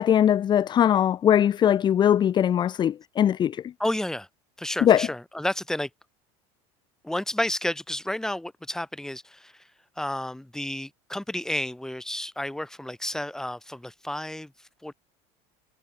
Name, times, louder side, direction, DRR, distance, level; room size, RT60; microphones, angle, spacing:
voice 1, 0.0-3.6 4.8-5.1, left 10 dB, 25° left, 0.7 m, -21 dB
voice 2, 3.8-4.3 4.6-5.9 7.0-9.6 10.0-14.5 14.8-14.9, left 1 dB, 5° left, 3.5 m, -31 dB
cardioid pair, 155°, 17 cm